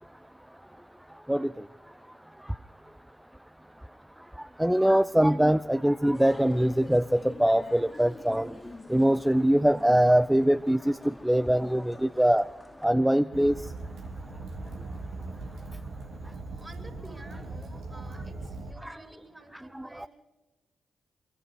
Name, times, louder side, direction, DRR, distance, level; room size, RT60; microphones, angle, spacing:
voice 1, 1.3-1.7 2.4-2.6 4.2-12.5 12.8-13.7 18.8-19.0 19.7-20.1, right 1 dB, 5° right, 0.7 m, -23 dB
sound 1, 6.1-12.9, left 2 dB, 30° left, 2.4 m, -47 dB
Fire, 13.3-18.7, right 2 dB, 80° right, 3.0 m, -39 dB
voice 2, 16.4-20.1, right 2 dB, 30° right, 7.0 m, -50 dB
24.0 x 23.5 x 4.8 m
hypercardioid pair, 40°, 0 cm